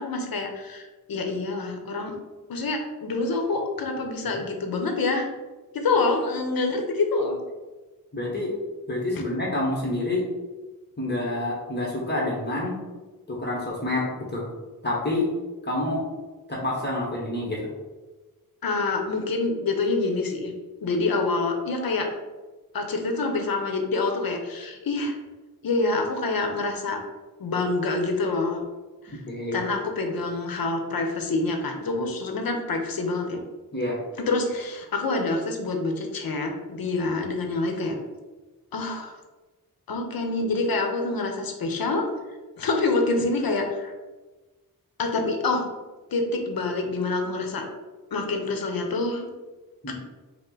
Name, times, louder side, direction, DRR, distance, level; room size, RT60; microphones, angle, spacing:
voice 1, 0.0-2.1 2.5-5.3 5.7-7.4 18.6-20.5 20.8-22.1 22.7-25.2 25.6-27.0 27.4-28.6 29.0-29.2 29.5-33.4 34.2-38.0 38.7-39.1 39.9-42.1 42.6-43.9 45.0-45.7 46.1-47.7 48.1-49.2 49.9-50.0, left 3 dB, 75° left, 3 dB, 0.8 m, -26 dB
voice 2, 8.1-8.5 8.9-10.2 11.0-12.8 13.3-14.4 14.8-15.3 15.6-16.1 16.5-17.7 29.3-29.6 33.7-34.0 49.8-49.9, left 2 dB, 30° left, -4 dB, 1.0 m, -27 dB
5.4 x 2.1 x 3.8 m, 1.2 s
wide cardioid pair, 105°, 36 cm